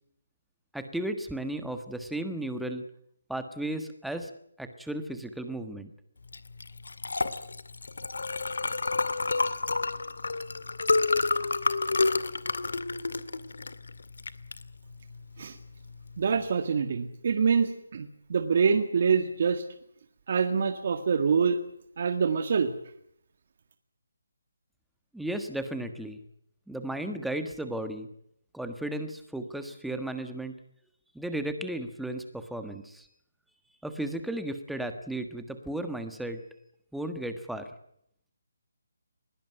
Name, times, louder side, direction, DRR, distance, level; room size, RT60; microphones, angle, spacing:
voice 1, 0.7-2.8 3.3-4.3 4.6-5.9 25.1-26.2 26.7-28.1 28.5-30.5 31.1-33.1 33.8-36.4 36.9-37.7, right 1 dB, ahead, 8 dB, 1.4 m, -34 dB
Liquid, 6.3-16.4, left 3 dB, 85° left, 2.0 m, -30 dB
voice 2, 16.2-19.7 20.3-21.6 22.0-22.7, right 6 dB, 45° right, 8 dB, 1.8 m, -25 dB
21.0 x 18.5 x 9.2 m, 0.71 s
hypercardioid pair, 170°, 0 cm